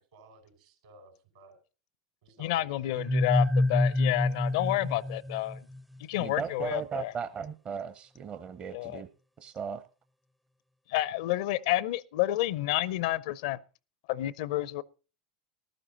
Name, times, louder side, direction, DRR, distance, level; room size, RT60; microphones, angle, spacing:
voice 1, 0.0-1.6 2.2-3.4 4.7-5.2, right 2 dB, 70° right, 4.6 m, -55 dB
voice 2, 2.4-5.6 6.0-7.1 8.7-9.0 10.9-13.6 14.1-14.8, left 15 dB, 65° left, 0.6 m, -30 dB
sound 1, 3.0-5.8, left 1 dB, ahead, 0.5 m, -27 dB
voice 3, 6.2-9.1 9.4-9.8, right 7 dB, 35° right, 0.8 m, -37 dB
14.5 x 12.0 x 3.9 m
hypercardioid pair, 85°, 4 cm